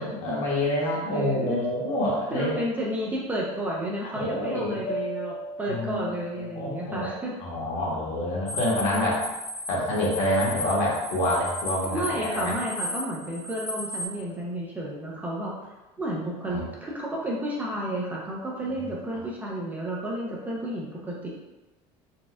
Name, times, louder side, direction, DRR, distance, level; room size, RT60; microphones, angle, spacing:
voice 1, 0.0-2.6 4.1-4.8 5.7-6.1 6.5-7.1 7.4-9.2 9.7-12.5 16.5-16.7, left 1 dB, 60° left, -5 dB, 1.2 m, -27 dB
voice 2, 0.9-1.6 2.3-7.3 11.9-15.5 16.0-21.4, right 1 dB, 15° right, -3 dB, 0.4 m, -31 dB
sound 1, 4.9-8.4 11.8-14.9, equal, 85° left, 0.6 m, -41 dB
sound 2, 8.5-14.1, left 1 dB, 35° left, 0.6 m, -35 dB
4.1 x 2.3 x 2.3 m, 1.1 s
cardioid pair, 165°, 13 cm